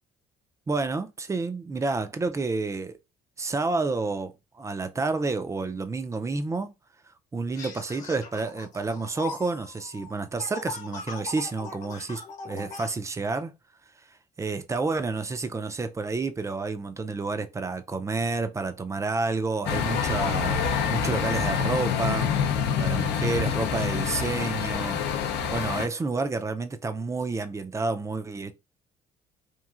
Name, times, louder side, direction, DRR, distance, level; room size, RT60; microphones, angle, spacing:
voice 1, 0.7-3.0 3.4-6.7 7.3-13.5 14.4-22.3 22.8-25.0 25.5-28.5, right 3 dB, 15° right, 0.3 m, -29 dB
sound 1, 7.5-12.9, left 5 dB, 50° left, 1.0 m, -40 dB
sound 2, 19.7-25.9, left 7 dB, 85° left, 0.5 m, -26 dB
3.0 x 2.5 x 2.3 m
cardioid pair, 110°, 17 cm